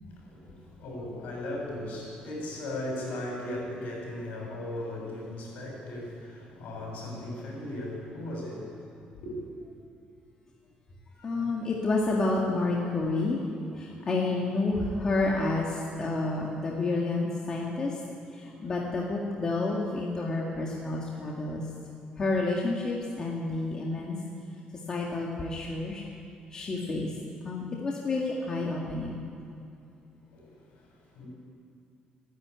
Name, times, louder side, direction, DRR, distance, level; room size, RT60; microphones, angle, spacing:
voice 1, 0.2-8.8 9.1-9.5 30.3-31.3, left 1 dB, 65° left, -1 dB, 7.0 m, -37 dB
voice 2, 11.2-13.4 13.8-18.0 18.3-21.6 22.2-24.2 24.9-26.0 26.5-27.1 27.4-29.2, left 2 dB, 25° left, -2 dB, 2.0 m, -29 dB
26.5 x 11.0 x 9.6 m, 2.6 s
cardioid pair, 165°, 3 cm